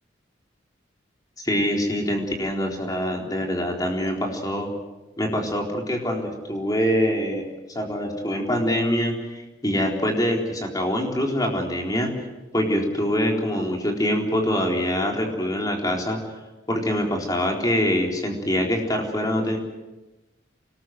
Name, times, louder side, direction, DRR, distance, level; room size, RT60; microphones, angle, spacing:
voice 1, 1.4-4.7 5.2-7.5 7.7-12.1 12.5-16.2 16.7-19.6, equal, 20° left, 1 dB, 4.0 m, -24 dB
25.0 x 19.5 x 7.8 m, 1.1 s
head